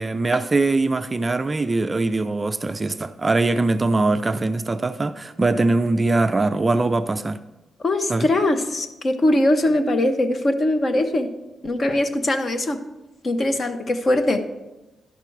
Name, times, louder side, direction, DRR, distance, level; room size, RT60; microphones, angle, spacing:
voice 1, 0.0-7.4 8.1-8.3, right 2 dB, 20° right, 10 dB, 0.3 m, -22 dB
voice 2, 7.8-11.3 11.6-12.8 13.2-14.4, left 1 dB, 35° left, 7 dB, 0.8 m, -21 dB
11.0 x 5.9 x 4.6 m, 1.0 s
wide cardioid pair, 140°, 0 cm